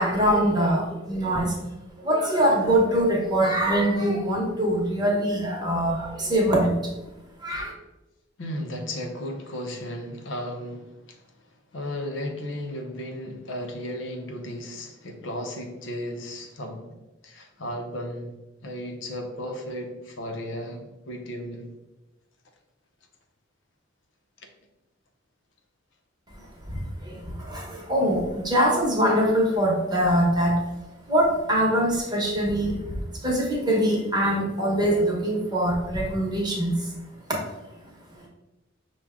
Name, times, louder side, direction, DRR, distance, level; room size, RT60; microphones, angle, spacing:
voice 1, 0.0-1.5 2.0-6.9 7.4-7.7 26.7-30.6 31.1-32.8 33.2-36.9, right 1 dB, 20° right, -2 dB, 1.0 m, -23 dB
voice 2, 8.4-11.2 11.7-16.9 17.2-18.3 18.6-21.7, equal, 75° left, 3 dB, 0.7 m, -34 dB
6.0 x 2.3 x 3.6 m, 1.0 s
head